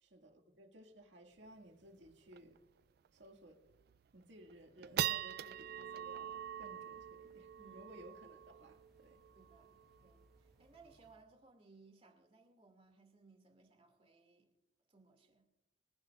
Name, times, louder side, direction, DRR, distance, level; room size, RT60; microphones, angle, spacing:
voice 1, 0.0-2.6 3.1-3.6 4.1-9.2, right 1 dB, 80° right, 3 dB, 2.0 m, -58 dB
sound 1, 1.5-1.6 1.8-1.9 2.3-2.6 3.0-3.1 3.7-4.1 4.5-11.1, right 11 dB, 55° right, 0.3 m, -43 dB
sound 2, 5.0-11.2, equal, ahead, 1.6 m, -71 dB
voice 2, 7.6-7.9 9.3-14.5 14.9-15.5, right 4 dB, 35° right, 4 dB, 2.2 m, -64 dB
25.0 x 10.5 x 2.4 m, 0.92 s
head